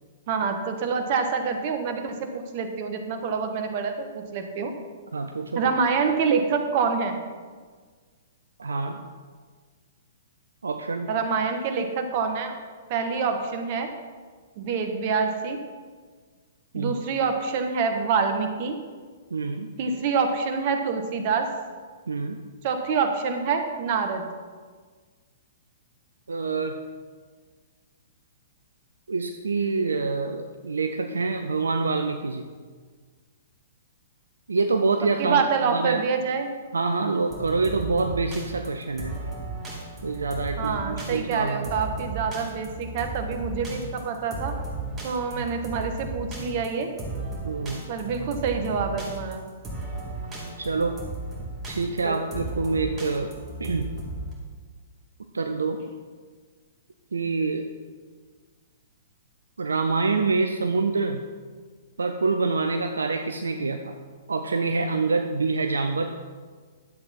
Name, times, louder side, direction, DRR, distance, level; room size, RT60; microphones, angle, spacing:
voice 1, 0.3-4.7 5.5-7.2 11.1-12.6 12.9-13.9 14.6-15.6 16.7-18.8 19.8-21.5 22.6-24.2 35.2-36.5 40.6-44.6 45.0-46.9 47.9-49.5 52.0-52.2, right 5 dB, 45° right, 6 dB, 1.3 m, -26 dB
voice 2, 5.1-5.6 8.6-9.0 10.6-11.1 16.7-16.9 19.3-19.7 22.1-22.4 26.3-26.8 29.1-32.5 34.5-35.4 35.7-36.0 36.7-39.2 40.0-41.7 45.3-45.4 47.4-47.9 50.6-51.0 51.7-53.3 53.6-53.9 55.3-55.8 57.1-57.7 59.6-61.2 62.0-64.0 64.3-66.2, right 4 dB, 75° right, 6 dB, 0.6 m, -26 dB
sound 1, 37.3-54.3, right 2 dB, 20° right, 2.7 m, -35 dB
11.0 x 7.9 x 4.2 m, 1.5 s
figure-of-eight pair, 115°, 0 cm